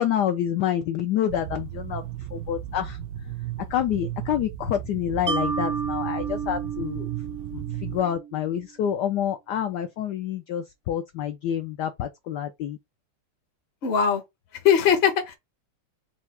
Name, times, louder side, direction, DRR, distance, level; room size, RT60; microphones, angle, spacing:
voice 1, 0.0-2.0 2.3-3.0 3.7-7.1 7.5-12.8, left 10 dB, 75° left, 0.9 m, -27 dB
sound 1, 1.3-8.0, right 11 dB, 70° right, 1.1 m, -35 dB
Mallet percussion, 5.3-8.5, right 6 dB, 50° right, 0.7 m, -31 dB
voice 2, 13.8-14.2 14.6-15.3, left 8 dB, 50° left, 0.8 m, -20 dB
4.5 x 2.4 x 4.2 m
omnidirectional pair, 2.4 m